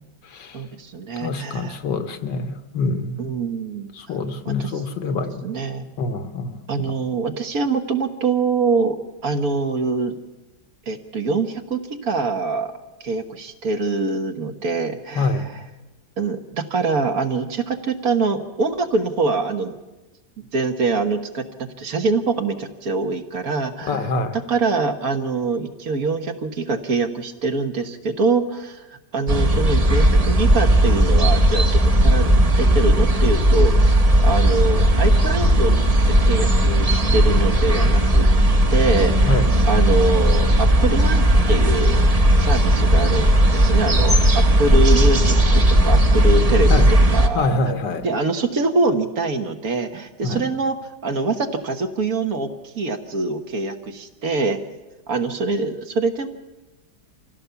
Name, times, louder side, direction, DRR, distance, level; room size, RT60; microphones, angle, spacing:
voice 1, 0.5-1.8 3.2-4.2 4.4-4.7 5.4-5.9 6.7-9.0 9.2-10.2 10.9-12.7 13.0-15.6 16.2-19.8 20.5-35.8 36.1-38.3 38.7-42.1 42.4-47.6 48.0-54.6 55.1-56.3, right 3 dB, 55° right, 6 dB, 1.6 m, -24 dB
voice 2, 1.2-3.2 4.0-5.4 6.0-6.6 15.2-15.5 23.9-24.4 39.3-39.5 46.7-46.9 47.4-48.1 50.2-50.4, left 3 dB, 75° left, 8 dB, 1.9 m, -25 dB
sound 1, 29.3-47.3, right 1 dB, 25° right, 1.1 m, -16 dB
25.0 x 16.5 x 7.0 m, 1.1 s
omnidirectional pair, 1.9 m